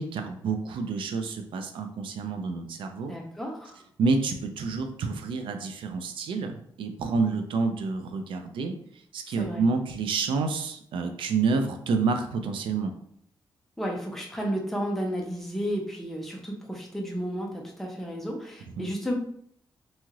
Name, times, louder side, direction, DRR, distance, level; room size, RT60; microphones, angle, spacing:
voice 1, 0.0-3.1 4.0-6.5 6.8-8.8 9.1-12.9 18.8-18.9, right 4 dB, 80° right, 6 dB, 0.4 m, -28 dB
voice 2, 3.1-3.8 9.4-9.6 13.8-19.1, equal, 5° left, -1 dB, 0.5 m, -32 dB
3.0 x 2.7 x 2.4 m, 0.67 s
wide cardioid pair, 165°, 9 cm